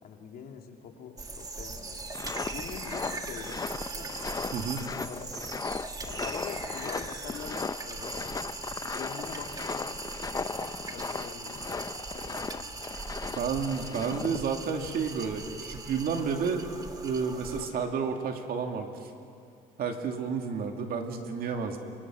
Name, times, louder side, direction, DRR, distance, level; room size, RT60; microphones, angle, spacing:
voice 1, 0.0-2.0 2.5-3.6 3.9-4.5 5.0-5.4 6.0-8.5 8.9-12.9 13.2-14.0 20.1-20.4, left 7 dB, 65° left, 3 dB, 2.6 m, -45 dB
sound 1, 1.2-17.7, right 3 dB, 20° right, 1.7 m, -40 dB
sound 2, 2.0-14.4, left 4 dB, 20° left, 0.6 m, -37 dB
voice 2, 4.5-4.9 13.4-16.6 17.0-19.1 19.8-21.8, right 6 dB, 60° right, 4 dB, 2.5 m, -31 dB
27.5 x 25.0 x 6.3 m, 2.5 s
cardioid pair, 110°, 17 cm